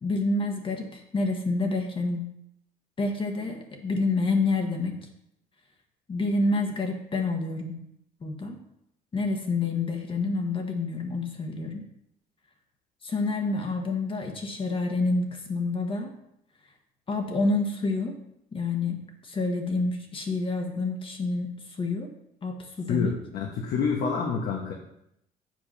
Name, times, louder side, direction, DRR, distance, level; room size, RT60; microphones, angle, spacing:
voice 1, 0.0-2.3 3.0-5.0 6.1-7.8 8.2-8.6 9.1-11.8 13.0-16.1 17.1-18.2 18.5-22.1 22.4-23.1, left 3 dB, 30° left, 3 dB, 1.5 m, -28 dB
voice 2, 22.9-24.7, left 5 dB, 65° left, 0 dB, 1.2 m, -28 dB
7.7 x 4.9 x 5.7 m, 0.77 s
cardioid pair, 110°, 17 cm